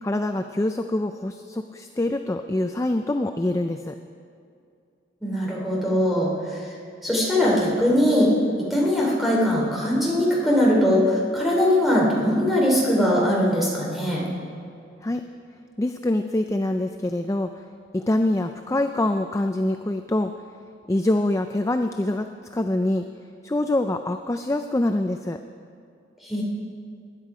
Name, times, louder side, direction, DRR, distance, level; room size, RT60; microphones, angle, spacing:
voice 1, 0.0-3.9 15.0-15.2 15.8-17.5 17.9-20.3 20.9-23.1 23.4-25.4, left 1 dB, 15° left, 7 dB, 0.4 m, -25 dB
voice 2, 5.2-6.6 7.0-8.3 8.7-14.2 26.2-26.4, left 1 dB, ahead, -5 dB, 3.3 m, -21 dB
20.0 x 10.0 x 4.9 m, 2.5 s
head